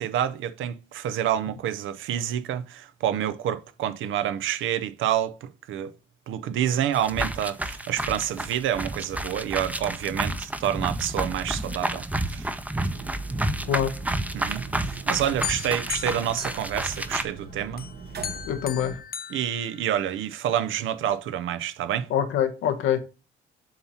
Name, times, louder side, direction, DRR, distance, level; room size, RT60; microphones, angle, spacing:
voice 1, 0.0-5.9 6.3-12.5 14.3-17.8 19.3-22.1, right 10 dB, 80° right, 0.7 m, -28 dB
sound 1, 6.9-17.2, right 1 dB, 5° right, 0.6 m, -30 dB
sound 2, 12.8-19.0, right 4 dB, 55° right, 1.0 m, -40 dB
sound 3, 15.4-17.4 17.8-20.3, left 8 dB, 50° left, 0.6 m, -37 dB
voice 2, 18.4-19.0 22.1-23.0, left 9 dB, 85° left, 1.1 m, -25 dB
7.6 x 2.9 x 5.5 m
cardioid pair, 90°, 20 cm